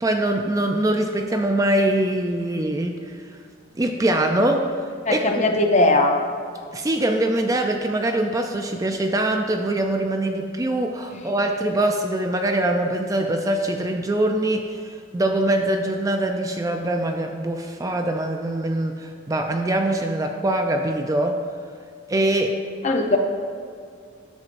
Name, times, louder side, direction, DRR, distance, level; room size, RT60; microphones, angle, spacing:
voice 1, 0.0-3.2 3.8-4.7 5.1-5.4 6.7-14.8 15.1-21.4 22.1-22.6, right 1 dB, 15° right, 4 dB, 0.3 m, -23 dB
voice 2, 5.1-6.2 22.8-23.2, left 2 dB, 35° left, 4 dB, 0.6 m, -19 dB
10.5 x 7.2 x 2.6 m, 2.3 s
head